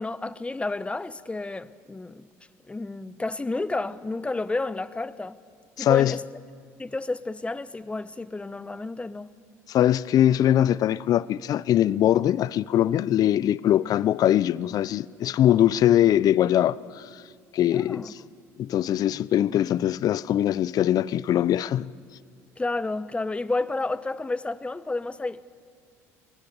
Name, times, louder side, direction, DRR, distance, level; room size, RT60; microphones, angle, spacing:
voice 1, 0.0-2.3 2.7-5.4 5.8-6.2 6.8-9.3 17.7-18.1 22.6-25.4, left 2 dB, 15° left, 1.0 m, -31 dB
voice 2, 5.8-6.1 9.7-17.2 17.5-18.2 18.6-21.9, left 11 dB, 50° left, 0.6 m, -22 dB
22.5 x 21.0 x 9.5 m
supercardioid pair, 80°, 8 cm